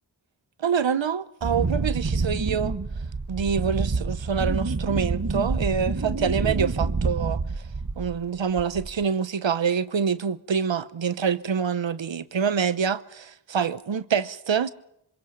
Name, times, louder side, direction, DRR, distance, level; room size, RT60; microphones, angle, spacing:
voice 1, 0.6-2.8 3.3-7.4 8.0-14.7, right 6 dB, 90° right, 0.9 m, -26 dB
Wind, 1.4-8.2 8.6-9.0, right 4 dB, 45° right, 1.4 m, -27 dB
27.0 x 25.5 x 5.2 m
wide cardioid pair, 60°, 44 cm